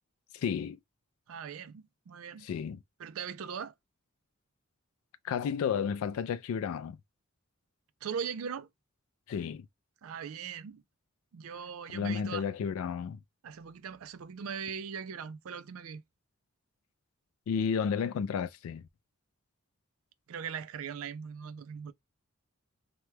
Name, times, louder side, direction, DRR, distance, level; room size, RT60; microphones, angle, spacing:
voice 1, 0.3-0.8 2.4-2.8 5.2-7.0 9.3-9.7 11.9-13.2 17.5-18.8, left 7 dB, 80° left, 0.3 m, -32 dB
voice 2, 1.3-2.5 3.0-3.7 8.0-8.7 10.0-10.8 11.3-12.4 13.4-16.0 20.3-21.9, right 7 dB, 75° right, 0.4 m, -40 dB
3.0 x 2.2 x 3.1 m
head